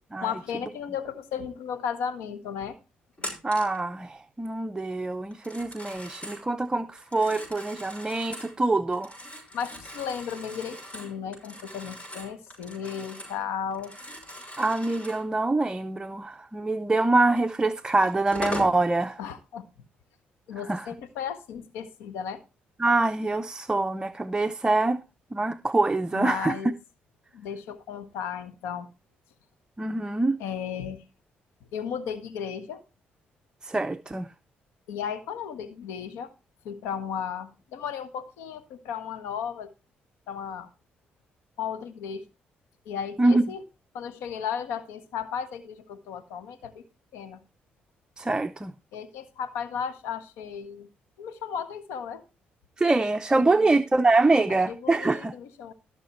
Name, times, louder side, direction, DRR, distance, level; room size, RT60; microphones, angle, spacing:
voice 1, 0.2-2.7 9.5-13.9 19.2-19.6 20.5-22.4 26.1-26.7 27.3-28.9 30.4-31.0 31.7-32.8 34.9-36.3 36.6-39.7 40.3-40.7 41.6-42.2 42.8-43.6 43.9-46.8 47.1-47.4 48.9-50.9 51.2-52.2 53.5-53.7 54.5-55.7, left 7 dB, 90° left, 1.5 m, -35 dB
Telephone, 3.2-3.8 5.3-6.4 7.0-8.5 8.9-13.4 13.7-15.3 17.4-17.5 18.0-18.8, left 1 dB, 30° left, 6.3 m, -40 dB
voice 2, 3.4-9.1 14.6-19.2 20.7-20.9 22.8-25.0 25.3-26.6 29.8-30.4 33.6-34.3 43.2-43.4 48.2-48.7 52.8-55.3, right 2 dB, 20° right, 0.7 m, -24 dB
14.5 x 6.4 x 4.4 m
supercardioid pair, 65°, 4 cm